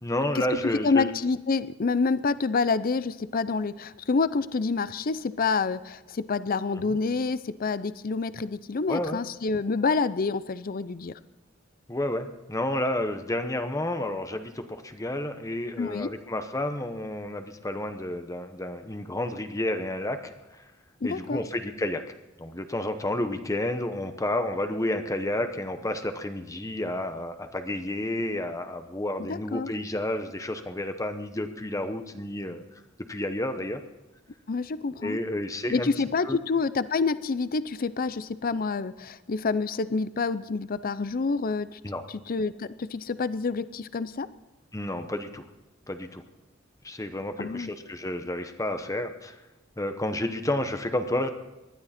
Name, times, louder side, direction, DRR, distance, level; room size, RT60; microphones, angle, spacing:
voice 1, 0.0-1.1 6.8-7.0 8.9-9.2 11.9-20.6 21.0-22.0 22.4-32.6 33.1-33.8 35.0-35.9 36.2-36.4 41.8-42.0 44.7-45.4 45.9-46.2 46.8-49.4 49.8-51.3, left 1 dB, 15° left, 8 dB, 0.9 m, -31 dB
voice 2, 0.8-11.2 15.8-16.1 21.0-21.4 29.3-29.7 34.5-35.2 35.7-41.8 42.3-44.3 47.4-47.7, left 4 dB, 45° left, 16 dB, 0.5 m, -27 dB
19.5 x 12.5 x 4.3 m, 1.0 s
head